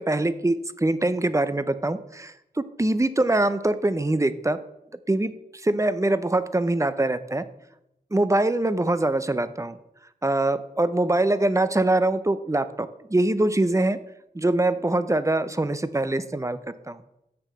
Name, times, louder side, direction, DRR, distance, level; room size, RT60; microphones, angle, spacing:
voice 1, 0.0-4.6 5.1-5.3 5.6-7.5 8.1-9.8 10.2-14.0 14.3-16.6 16.9-17.0, right 2 dB, 20° right, 13 dB, 0.5 m, -23 dB
6.7 x 5.7 x 7.4 m, 0.84 s
wide cardioid pair, 65°, 17 cm